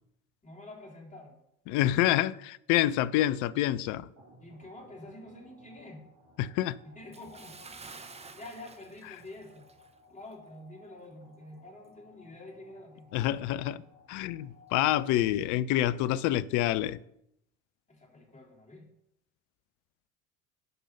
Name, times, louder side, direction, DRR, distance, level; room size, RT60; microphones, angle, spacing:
voice 1, 0.4-1.4 4.4-6.1 6.8-7.6 8.3-9.7 10.1-13.2 17.9-18.9, left 2 dB, 20° left, 3.7 m, -48 dB
voice 2, 1.7-4.1 6.4-6.8 13.1-13.8 14.1-17.0, left 14 dB, 45° left, 0.6 m, -27 dB
sound 1, 4.2-15.5, left 1 dB, 50° right, 4.0 m, -59 dB
Bathtub (filling or washing) / Splash splatter, 7.1-10.0 10.3-10.5 11.0-11.1, right 4 dB, 15° right, 0.9 m, -50 dB
9.6 x 5.3 x 5.4 m
figure-of-eight pair, 65°, 42 cm